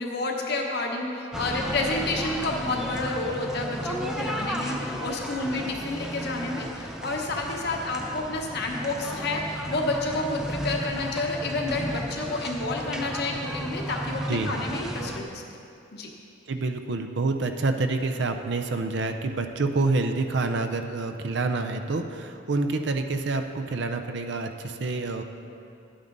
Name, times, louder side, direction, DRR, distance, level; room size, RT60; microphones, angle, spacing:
voice 1, 0.0-15.4 15.9-16.1, left 2 dB, 50° left, 0 dB, 1.1 m, -30 dB
sound 1, 1.3-15.2, equal, 5° right, 0.5 m, -34 dB
voice 2, 16.5-25.2, right 3 dB, 55° right, 6 dB, 0.5 m, -27 dB
11.5 x 8.8 x 4.0 m, 2.6 s
head